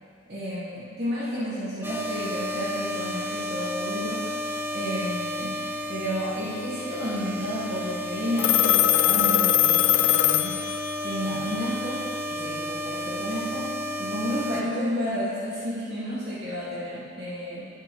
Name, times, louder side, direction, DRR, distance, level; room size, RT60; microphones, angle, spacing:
voice 1, 0.3-4.3 4.7-5.6 5.9-10.6 11.0-13.7 14.0-17.7, equal, 60° right, -9 dB, 2.5 m, -31 dB
sound 1, 1.8-14.6, equal, 10° right, 0.5 m, -33 dB
Telephone, 8.4-11.1, left 12 dB, 70° left, 0.3 m, -21 dB
12.0 x 8.3 x 3.4 m, 2.3 s
head